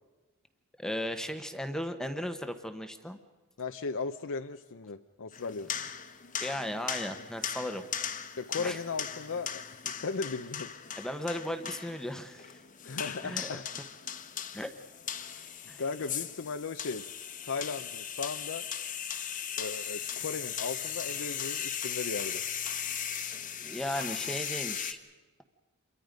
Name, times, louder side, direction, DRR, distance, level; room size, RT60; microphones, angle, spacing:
voice 1, 0.8-3.2 6.4-7.8 8.6-8.8 11.0-12.6 13.2-13.6 14.5-14.7 15.7-15.8 23.6-25.0, equal, 5° left, 7 dB, 1.0 m, -36 dB
voice 2, 3.6-5.7 8.4-10.7 12.8-13.6 15.3-15.5 15.8-17.0 17.4-18.7 19.6-22.4 24.2-24.4, left 4 dB, 60° left, 7 dB, 0.7 m, -36 dB
sound 1, 5.3-24.9, left 8 dB, 35° left, 1.2 m, -38 dB
28.0 x 23.5 x 5.2 m, 1.2 s
head